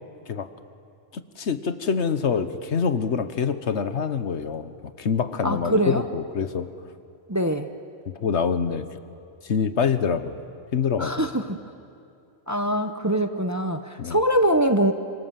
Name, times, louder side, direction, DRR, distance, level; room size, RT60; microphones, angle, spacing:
voice 1, 1.1-6.7 8.2-8.9 9.4-10.4 10.7-11.3 14.0-14.2, left 6 dB, 65° left, 11 dB, 1.3 m, -25 dB
voice 2, 5.4-6.0 7.3-7.7 11.0-11.6 12.5-14.9, right 1 dB, 15° right, 7 dB, 0.8 m, -23 dB
27.0 x 25.5 x 7.6 m, 2.6 s
omnidirectional pair, 1.3 m